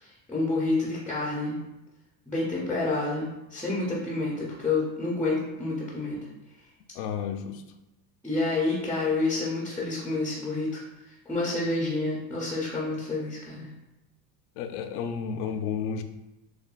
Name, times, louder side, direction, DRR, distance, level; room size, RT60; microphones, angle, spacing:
voice 1, 0.0-1.6 2.3-6.2 8.2-10.8 11.1-13.7, left 2 dB, 5° left, -5 dB, 0.3 m, -29 dB
voice 2, 7.0-7.6 14.6-16.0, left 7 dB, 85° left, 7 dB, 0.6 m, -32 dB
6.6 x 2.2 x 2.3 m, 0.96 s
cardioid pair, 150°, 45 cm